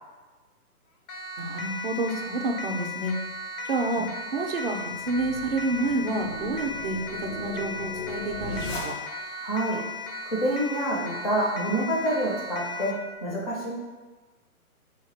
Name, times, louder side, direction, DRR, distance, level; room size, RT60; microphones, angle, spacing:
Siren, 1.1-13.1, left 2 dB, 80° left, 0.7 m, -36 dB
voice 1, 1.4-3.1 3.7-4.1 4.3-7.0 7.4-8.9, right 2 dB, 45° right, 1 dB, 0.5 m, -29 dB
sound 1, 4.8-9.4, left 2 dB, 60° left, 0.9 m, -38 dB
voice 2, 9.4-9.8 10.2-13.7, right 1 dB, 25° left, -4 dB, 0.6 m, -27 dB
4.0 x 2.8 x 3.1 m, 1.3 s
hypercardioid pair, 165°, 44 cm